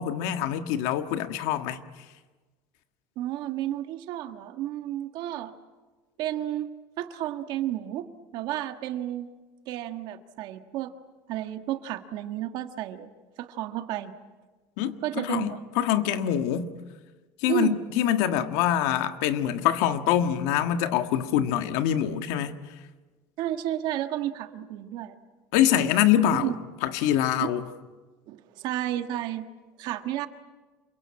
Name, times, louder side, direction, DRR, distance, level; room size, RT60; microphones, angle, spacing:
voice 1, 0.0-1.8 14.8-16.8 17.4-22.6 25.5-26.5 26.8-27.7, left 10 dB, 75° left, 1.6 m, -25 dB
voice 2, 3.2-5.5 6.2-6.7 7.0-8.1 8.3-9.3 9.7-10.9 11.3-13.1 13.4-14.1 15.0-15.6 17.5-17.8 23.4-25.2 26.4-26.5 28.3-29.4 29.8-30.3, right 12 dB, 50° right, 1.6 m, -31 dB
27.5 x 23.0 x 8.8 m
cardioid pair, 165°, 9 cm